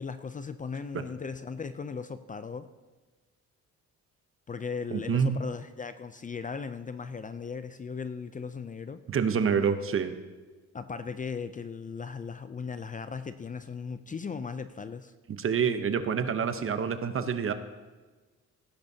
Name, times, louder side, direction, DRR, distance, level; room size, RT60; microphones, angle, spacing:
voice 1, 0.0-2.7 4.5-9.0 10.7-15.1, left 5 dB, 25° left, 11 dB, 0.5 m, -37 dB
voice 2, 4.9-5.4 9.1-10.1 15.4-17.5, right 6 dB, 45° right, 10 dB, 0.9 m, -27 dB
17.5 x 10.5 x 2.8 m, 1.3 s
cardioid pair, 90°, 30 cm